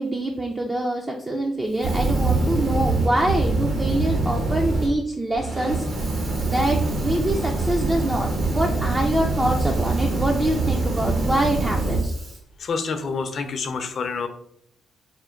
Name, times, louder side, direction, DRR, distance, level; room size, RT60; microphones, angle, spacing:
voice 1, 0.0-5.8 6.4-12.1, right 1 dB, 20° right, 1 dB, 0.5 m, -25 dB
Fire, 1.7-4.9 5.3-12.4, right 2 dB, 55° right, 1.2 m, -24 dB
voice 2, 12.6-14.3, left 4 dB, 50° left, 7 dB, 0.5 m, -27 dB
4.3 x 2.1 x 3.7 m, 0.71 s
cardioid pair, 90°, 0 cm